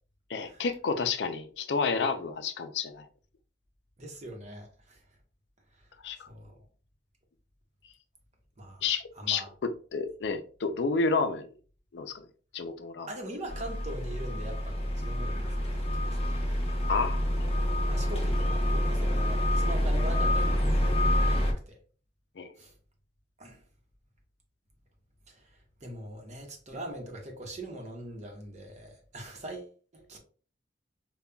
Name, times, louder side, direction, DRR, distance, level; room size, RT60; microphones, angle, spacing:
voice 1, 0.3-3.1 6.0-6.3 8.8-9.4 9.9-11.5 11.9-12.2 12.5-13.1 16.9-17.5 22.4-22.5, left 4 dB, 75° left, 0.4 m, -30 dB
voice 2, 4.0-5.0 6.2-6.6 8.6-8.8 9.2-9.5 13.1-16.3 17.9-21.8 22.6-22.7 23.4-23.6 25.3-25.5 25.8-30.2, right 1 dB, 40° right, 0.9 m, -42 dB
sound 1, 13.5-21.5, left 1 dB, 35° left, 0.8 m, -27 dB
5.2 x 2.3 x 2.2 m
head